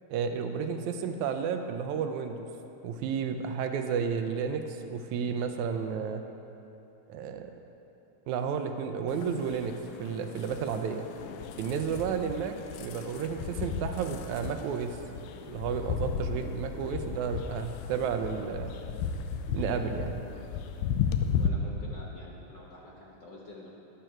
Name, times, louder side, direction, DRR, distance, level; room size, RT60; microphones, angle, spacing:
voice 1, 0.1-2.4 2.8-6.2 7.1-7.5 8.3-11.1 11.6-12.5 12.8-15.0 15.5-18.8 19.5-20.3, right 6 dB, 80° right, 6 dB, 2.0 m, -32 dB
sound 1, 9.1-21.5, left 7 dB, 85° left, 2.1 m, -35 dB
voice 2, 21.4-23.7, left 2 dB, 70° left, -4 dB, 1.0 m, -48 dB
12.5 x 11.0 x 4.5 m, 2.9 s
omnidirectional pair, 3.5 m